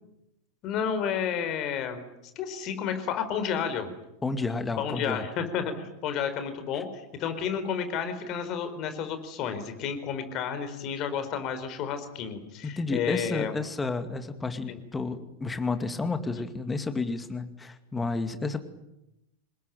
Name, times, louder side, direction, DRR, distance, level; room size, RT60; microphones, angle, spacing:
voice 1, 0.6-2.0 2.3-3.9 4.8-13.5 14.7-14.8, left 7 dB, 35° left, 9 dB, 4.6 m, -31 dB
voice 2, 4.2-5.3 12.8-18.6, left 3 dB, 10° left, 9 dB, 2.3 m, -31 dB
27.5 x 21.0 x 9.2 m, 0.89 s
figure-of-eight pair, 90°, 0 cm